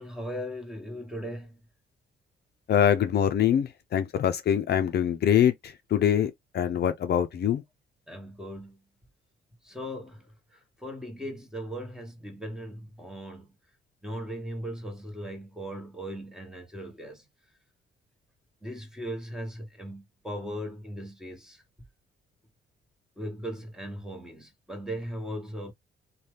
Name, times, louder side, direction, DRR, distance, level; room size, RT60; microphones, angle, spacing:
voice 1, 0.0-1.6 8.1-8.8 9.6-13.5 14.0-17.2 18.6-21.6 23.2-25.7, equal, 5° right, 1.1 m, -38 dB
voice 2, 2.7-7.6, left 9 dB, 55° left, 0.5 m, -24 dB
2.7 x 2.3 x 3.3 m
cardioid pair, 90°, 20 cm